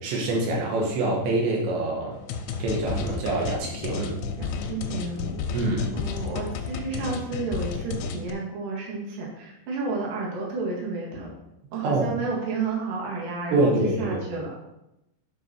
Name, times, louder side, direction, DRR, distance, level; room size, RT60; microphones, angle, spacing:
voice 1, 0.0-2.2 2.6-4.2 5.5-5.9 11.8-12.1 13.5-14.3, right 2 dB, 80° right, -2 dB, 3.7 m, -25 dB
sound 1, 2.3-8.3, left 5 dB, 85° left, 3.1 m, -32 dB
voice 2, 4.4-5.3 5.9-11.3 11.7-14.5, right 4 dB, 55° right, -3 dB, 3.3 m, -31 dB
10.5 x 5.5 x 4.5 m, 0.87 s
omnidirectional pair, 5.1 m